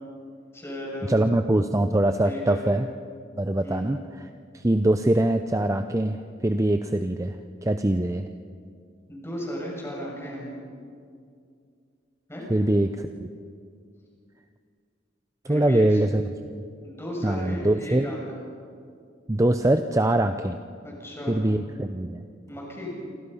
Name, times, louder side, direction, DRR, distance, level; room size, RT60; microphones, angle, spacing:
voice 1, 0.5-1.1 2.2-2.6 3.6-3.9 9.1-10.5 12.3-12.5 15.5-16.0 16.8-18.2 20.8-21.4 22.5-22.9, equal, 15° left, -2 dB, 7.2 m, -35 dB
voice 2, 1.1-2.9 3.4-4.3 4.5-7.4 7.6-8.3 12.5-13.3 15.5-16.2 16.5-16.6 17.2-18.1 19.3-20.6 21.3-22.2, right 1 dB, 15° right, 8 dB, 0.6 m, -23 dB
28.0 x 25.5 x 5.6 m, 2.3 s
head